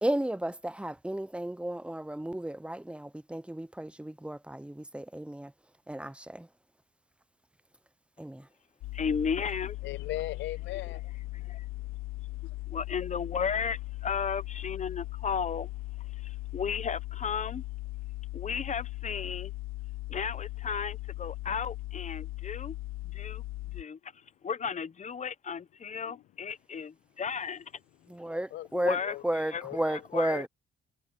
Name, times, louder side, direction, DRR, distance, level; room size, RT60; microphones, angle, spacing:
voice 1, 0.0-5.5 5.9-6.5 8.2-8.5 28.1-29.0 29.2-30.5, right 1 dB, 5° right, 0.7 m, -33 dB
sound 1, 8.8-23.8, left 17 dB, 90° left, 1.0 m, -38 dB
voice 2, 8.9-9.8 11.3-11.6 12.7-15.7 16.1-17.6 18.3-19.5 20.1-22.8 23.1-23.4 23.7-24.1 24.4-27.7 28.7-30.5, left 6 dB, 35° left, 0.8 m, -34 dB
voice 3, 9.8-11.0 12.4-12.5 26.1-26.2 28.5-28.7 29.0-29.2 29.6-29.8 30.3-30.4, left 15 dB, 70° left, 0.4 m, -37 dB
cardioid pair, 90°, 20 cm